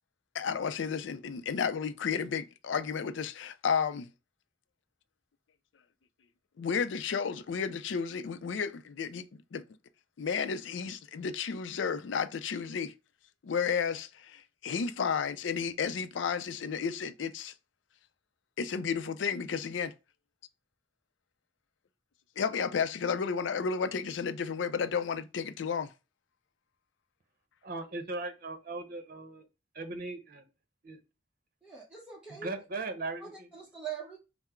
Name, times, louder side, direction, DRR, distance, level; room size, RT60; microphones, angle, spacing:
voice 1, 0.3-4.1 6.6-9.2 9.5-9.6 10.2-12.9 13.4-17.5 18.6-19.9 22.4-25.9, left 6 dB, 85° left, 0.4 m, -32 dB
voice 2, 27.6-29.4 29.7-30.4 30.8-31.0 32.3-33.5, right 3 dB, 50° right, 0.8 m, -38 dB
voice 3, 31.6-32.5 33.2-34.2, right 8 dB, 5° right, 0.8 m, -42 dB
5.7 x 2.0 x 4.4 m
head